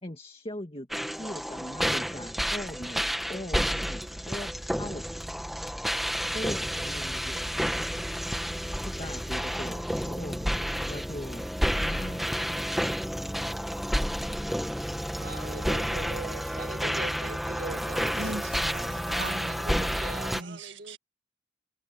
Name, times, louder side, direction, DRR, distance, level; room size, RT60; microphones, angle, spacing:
voice 1, 0.0-5.2 6.3-7.7 8.8-11.5 11.8-12.8, left 1 dB, 30° left, 2.1 m, -40 dB
sound 1, 0.9-20.4, equal, ahead, 1.6 m, -30 dB
voice 2, 15.2-18.0 19.7-19.8 20.0-20.3, right 3 dB, 50° right, 0.8 m, -40 dB
voice 3, 18.1-20.0 20.2-21.0, right 2 dB, 65° right, 2.0 m, -39 dB
head